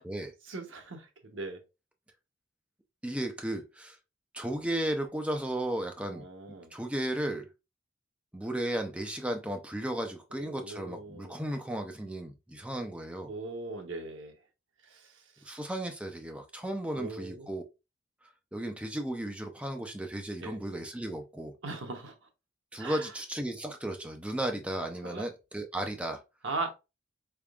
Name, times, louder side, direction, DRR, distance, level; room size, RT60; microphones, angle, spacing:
voice 1, 0.5-1.6 6.1-6.7 10.4-11.3 12.8-12.9 13.3-14.4 14.8-15.6 16.9-17.5 20.4-20.6 21.6-22.2 22.8-23.1 25.0-25.3 26.4-26.7, right 3 dB, 80° right, 0.8 m, -39 dB
voice 2, 3.0-4.0 4.3-7.5 8.3-13.3 15.4-17.6 18.5-21.5 22.7-26.2, right 1 dB, 5° right, 0.5 m, -35 dB
3.5 x 3.5 x 2.3 m
head